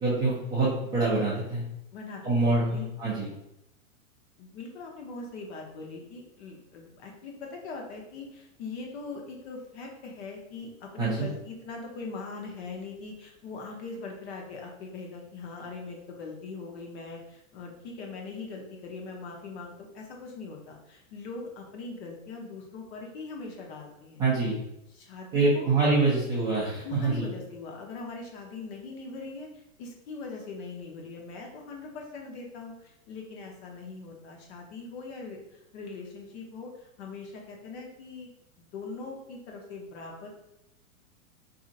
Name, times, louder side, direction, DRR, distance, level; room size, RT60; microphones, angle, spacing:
voice 1, 0.0-1.6 2.2-3.3 11.0-11.3 24.2-24.6 25.3-27.3, right 3 dB, 10° right, -10 dB, 0.4 m, -25 dB
voice 2, 1.9-2.9 4.4-24.2 24.9-25.7 26.8-38.3 38.6-40.3, left 3 dB, 50° left, 0 dB, 1.0 m, -41 dB
4.1 x 2.7 x 2.5 m, 0.84 s
hypercardioid pair, 135°, 42 cm